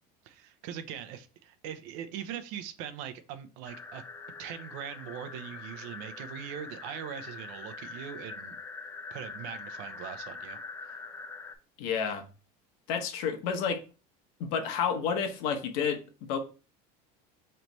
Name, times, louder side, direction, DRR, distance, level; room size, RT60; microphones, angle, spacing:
voice 1, 0.2-4.0 4.4-8.6 9.1-11.0, right 9 dB, 75° right, 0.6 m, -41 dB
sound 1, 3.7-11.6, left 4 dB, 10° left, 0.3 m, -43 dB
voice 2, 11.8-12.3 12.9-13.8 14.4-16.4, left 7 dB, 70° left, 1.0 m, -30 dB
3.3 x 3.0 x 4.0 m
cardioid pair, 145°, 19 cm